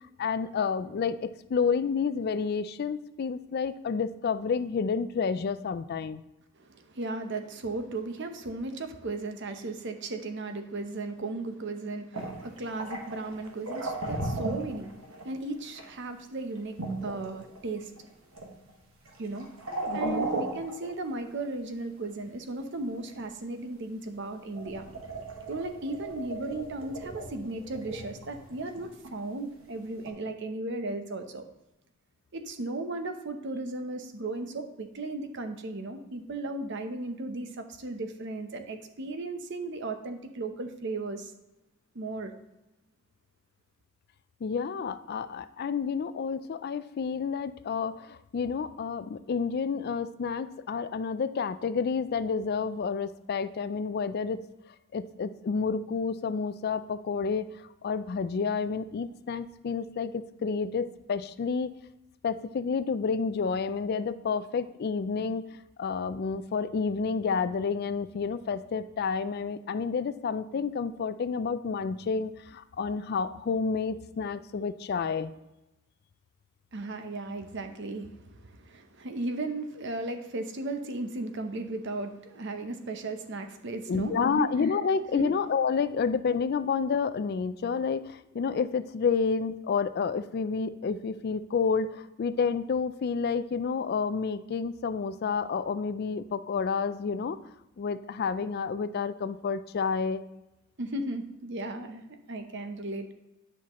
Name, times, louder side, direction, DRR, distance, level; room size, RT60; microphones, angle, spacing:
voice 1, 0.2-6.2 19.9-20.3 44.4-54.4 54.9-61.7 62.2-65.4 65.8-75.3 83.9-97.4 97.8-100.2, left 5 dB, 50° left, 13 dB, 0.3 m, -30 dB
voice 2, 6.6-18.1 19.2-19.5 19.9-24.9 25.5-31.5 32.3-41.3 41.9-42.3 76.7-84.5 85.1-85.3 100.8-103.1, right 2 dB, 55° right, 7 dB, 0.8 m, -36 dB
sound 1, 12.1-15.3 15.7-15.9 16.8-18.1 18.3-18.7 19.1-21.4 22.8-23.2 24.2-24.3 24.5-29.1 30.0-30.1, right 2 dB, 80° right, 1.4 m, -36 dB
9.7 x 5.8 x 3.0 m, 0.95 s
head